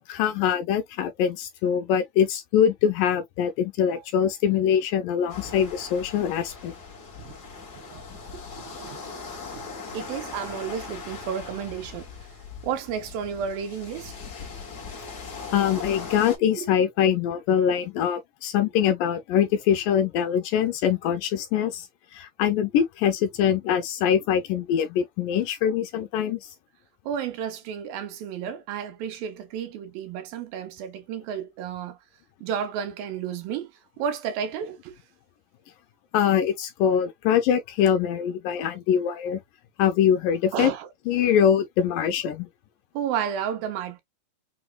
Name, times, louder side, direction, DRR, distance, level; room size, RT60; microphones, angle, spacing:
voice 1, 0.1-6.7 15.5-21.9 22.1-26.5 36.1-39.4 39.8-40.7 41.1-42.5, left 9 dB, 80° left, 2.1 m, -23 dB
sound 1, 5.3-16.4, left 5 dB, 45° left, 1.2 m, -39 dB
voice 2, 8.3-12.3 12.6-14.1 16.6-16.7 27.1-32.0 32.4-33.7 34.0-35.0 40.5-40.9 42.9-44.0, right 8 dB, 75° right, 2.5 m, -32 dB
6.0 x 3.0 x 2.2 m
omnidirectional pair, 4.4 m